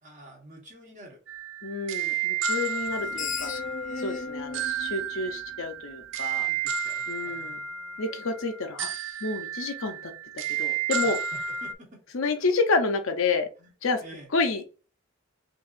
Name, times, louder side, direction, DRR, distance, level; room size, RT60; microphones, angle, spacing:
voice 1, 0.0-1.2 6.4-8.3 11.0-11.1 11.6-12.0 14.0-14.3, right 1 dB, 35° right, -1 dB, 1.3 m, -49 dB
sound 1, 1.3-11.7, right 7 dB, 65° right, 0.4 m, -32 dB
voice 2, 1.6-3.5 4.0-6.5 7.1-7.6 8.0-8.9 9.2-11.2 12.1-13.5 13.8-14.0 14.3-14.9, left 3 dB, 80° left, 6 dB, 0.6 m, -29 dB
Screech, 2.8-6.1, left 4 dB, 40° left, 0.4 m, -37 dB
4.6 x 2.6 x 2.5 m, 0.35 s
head